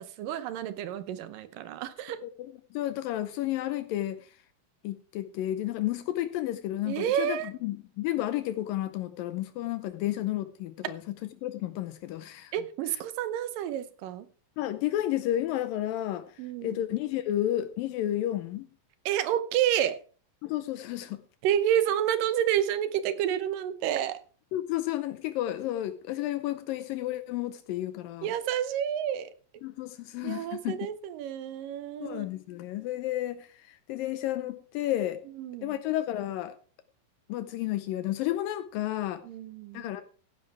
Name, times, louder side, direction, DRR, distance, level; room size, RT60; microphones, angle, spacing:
voice 1, 0.0-2.2 6.9-7.5 12.5-14.3 16.4-16.8 19.1-20.0 21.4-24.2 28.2-29.3 30.2-32.2 35.4-35.8 39.2-39.9, right 10 dB, 75° right, 2.5 m, -29 dB
voice 2, 2.2-4.3 4.8-11.2 11.4-12.5 14.6-16.3 16.6-18.7 20.4-21.2 24.5-28.3 29.6-30.9 32.0-35.2 35.6-36.6 37.3-39.2 39.7-40.0, left 13 dB, 80° left, 2.4 m, -32 dB
15.5 x 10.5 x 3.4 m
omnidirectional pair, 4.1 m